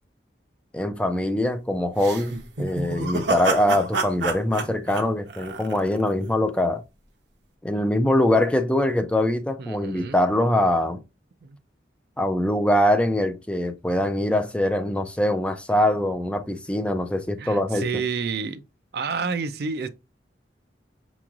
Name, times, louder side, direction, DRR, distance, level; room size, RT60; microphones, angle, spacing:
voice 1, 0.7-6.8 7.6-11.0 12.2-17.8, left 1 dB, 5° left, 0.4 m, -23 dB
sound 1, 2.0-6.1, right 3 dB, 80° right, 0.9 m, -28 dB
voice 2, 9.6-10.2 11.4-11.6 17.4-18.6 18.9-19.9, right 5 dB, 60° right, 0.4 m, -29 dB
6.1 x 3.0 x 2.4 m
head